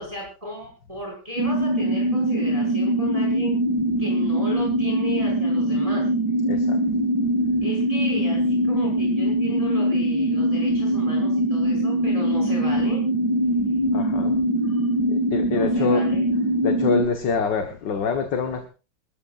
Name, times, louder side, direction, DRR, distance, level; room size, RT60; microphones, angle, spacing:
voice 1, 0.0-3.6 4.0-6.1 7.6-13.0 14.7-14.9 15.5-16.2, left 1 dB, 15° right, -2 dB, 6.3 m, -35 dB
sound 1, 1.4-17.1, right 1 dB, 65° right, 3.5 m, -22 dB
voice 2, 13.9-14.3 15.1-16.0 16.6-18.7, left 5 dB, 65° left, 5 dB, 2.1 m, -25 dB
26.5 x 14.0 x 2.6 m, 0.33 s
omnidirectional pair, 2.2 m